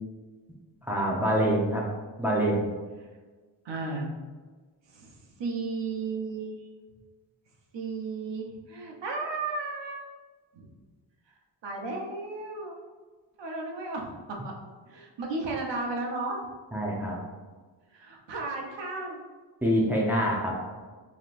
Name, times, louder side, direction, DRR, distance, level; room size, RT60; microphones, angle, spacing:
voice 1, 0.8-1.8 2.2-2.7 16.7-17.2 19.6-20.6, equal, 5° right, -4 dB, 0.7 m, -25 dB
voice 2, 3.6-4.1 4.9-5.1 5.4-6.5 7.7-10.0 10.5-10.7 11.6-12.7 13.4-14.1 14.4-14.5 14.9-16.4 17.9-19.2, right 3 dB, 70° right, 0 dB, 1.0 m, -34 dB
5.0 x 3.1 x 2.5 m, 1.4 s
cardioid pair, 110°, 45 cm